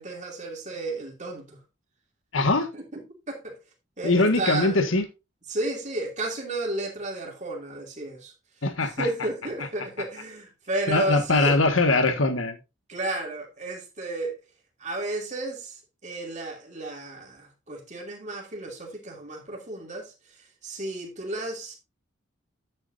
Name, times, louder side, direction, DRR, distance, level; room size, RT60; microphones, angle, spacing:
voice 1, 0.0-1.6 2.7-3.6 4.0-4.9 5.5-8.3 8.8-11.6 12.9-14.3 14.8-15.7 16.0-20.1 20.6-21.8, right 2 dB, 35° right, 2.8 m, -32 dB
voice 2, 2.3-2.7 4.0-5.0 8.6-9.1 10.9-12.6, left 2 dB, 80° left, 1.7 m, -22 dB
9.7 x 8.6 x 2.6 m
head